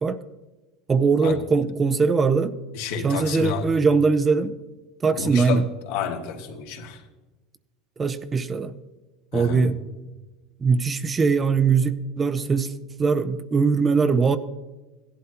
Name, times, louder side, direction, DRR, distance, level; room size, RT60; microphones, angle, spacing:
voice 1, 0.9-2.5 3.0-4.5 5.0-5.6 8.0-8.7 9.3-9.8 10.6-12.7 13.0-14.4, right 5 dB, 20° right, 12 dB, 0.6 m, -21 dB
voice 2, 2.7-3.7 5.1-7.0 9.3-9.7, left 5 dB, 75° left, 1 dB, 2.0 m, -30 dB
16.5 x 11.5 x 2.9 m, 1.2 s
supercardioid pair, 130°, 0 cm